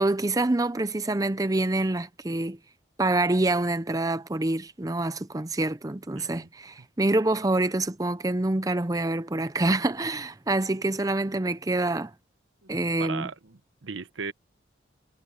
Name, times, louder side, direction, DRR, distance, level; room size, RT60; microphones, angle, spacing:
voice 1, 0.0-2.6 3.0-12.1 12.7-13.3, right 2 dB, 20° right, 0.6 m, -26 dB
voice 2, 6.2-6.5 12.6-12.7 13.0-14.3, right 5 dB, 80° right, 1.0 m, -37 dB
head